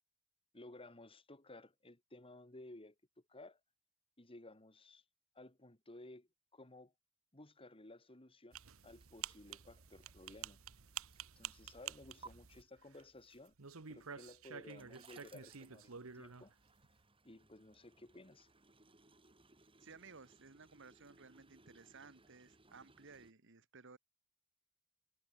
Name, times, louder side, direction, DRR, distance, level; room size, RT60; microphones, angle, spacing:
voice 1, 0.5-2.9 3.3-3.6 4.2-5.0 5.3-6.9 7.3-10.6 11.4-13.5 13.9-16.5 17.2-18.5, left 2 dB, 25° left, 2.5 m, -56 dB
sound 1, 8.5-13.2 13.5-16.5, right 8 dB, 85° right, 1.3 m, -50 dB
sound 2, 8.7-12.3 13.8-23.3, right 4 dB, 25° right, 5.3 m, -65 dB
voice 2, 19.8-24.0, right 4 dB, 60° right, 1.6 m, -58 dB
head